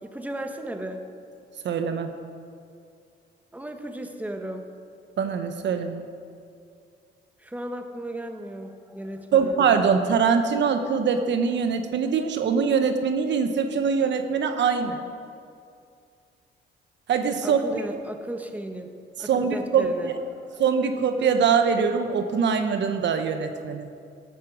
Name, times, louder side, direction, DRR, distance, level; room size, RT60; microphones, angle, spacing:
voice 1, 0.0-1.0 3.5-4.7 7.4-9.6 17.4-18.9 19.2-20.6, right 1 dB, 10° right, 5 dB, 1.3 m, -35 dB
voice 2, 1.6-2.1 5.2-6.1 9.3-15.0 17.1-17.6 19.3-20.1 20.6-23.9, right 6 dB, 65° right, 7 dB, 1.1 m, -23 dB
17.5 x 8.3 x 6.4 m, 2.4 s
cardioid pair, 90°, 20 cm